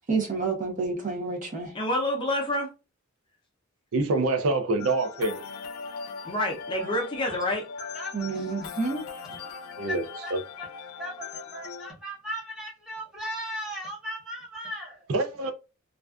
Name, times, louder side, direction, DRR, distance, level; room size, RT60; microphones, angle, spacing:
voice 1, 0.1-1.8 8.1-9.0, right 4 dB, 40° right, 0.6 m, -29 dB
voice 2, 1.7-2.7 6.2-7.6, left 1 dB, 25° left, 0.5 m, -27 dB
voice 3, 3.9-5.4 9.8-10.0 10.3-10.4 15.1-15.5, right 2 dB, 75° right, 0.4 m, -25 dB
sound 1, 4.8-11.9, left 5 dB, 90° left, 0.3 m, -40 dB
voice 4, 7.9-8.8 9.3-9.6 9.9-10.3 10.6-10.7 11.0-15.1, equal, 5° right, 0.8 m, -37 dB
2.4 x 2.2 x 2.3 m
head